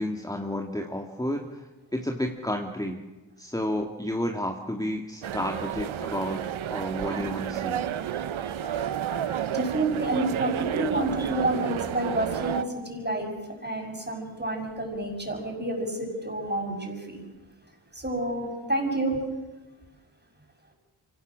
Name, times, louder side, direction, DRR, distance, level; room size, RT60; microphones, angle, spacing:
voice 1, 0.0-3.0 3.4-7.8 14.0-14.1 18.4-18.7, left 1 dB, 10° left, 2 dB, 2.1 m, -31 dB
sound 1, 5.2-12.7, right 5 dB, 45° right, 4.4 m, -42 dB
sound 2, 5.2-12.6, right 10 dB, 90° right, 0.8 m, -31 dB
voice 2, 9.5-17.2 17.9-19.2, right 1 dB, 20° right, 2 dB, 6.5 m, -29 dB
24.5 x 17.0 x 7.5 m, 1.1 s
cardioid pair, 45°, 46 cm